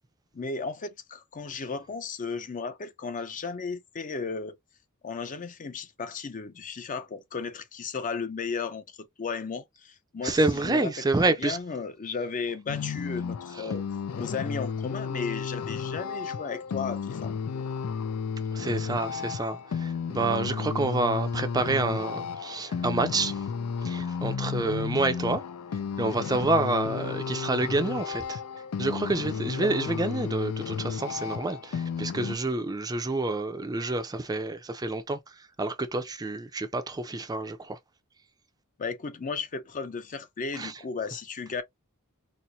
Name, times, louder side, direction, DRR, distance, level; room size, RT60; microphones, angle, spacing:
voice 1, 0.3-4.6 5.0-13.8 14.2-17.3 38.8-41.6, left 5 dB, 35° left, 0.5 m, -35 dB
voice 2, 10.2-11.6 18.5-23.4 23.8-25.4 26.0-28.4 28.8-35.2 35.6-37.8 40.6-40.7, right 2 dB, 15° right, 0.4 m, -28 dB
sound 1, 12.7-32.4, left 6 dB, 90° left, 0.4 m, -33 dB
4.2 x 2.1 x 2.7 m
head